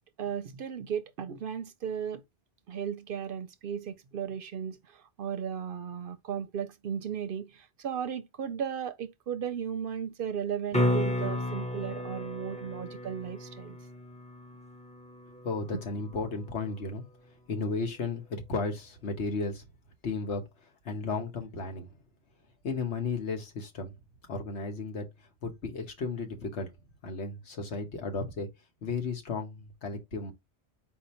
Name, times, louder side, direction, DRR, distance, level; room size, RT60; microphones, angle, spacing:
voice 1, 0.2-2.2 2.7-13.8, right 8 dB, 60° right, 0.6 m, -35 dB
sound 1, 10.7-16.8 21.4-21.5, left 1 dB, 10° left, 0.5 m, -33 dB
voice 2, 15.4-17.0 17.5-19.6 20.0-20.4 20.8-21.9 22.6-23.9 24.3-25.1 25.4-26.7 27.0-28.5 28.8-30.3, left 4 dB, 85° left, 1.5 m, -34 dB
4.5 x 2.8 x 4.2 m
omnidirectional pair, 1.1 m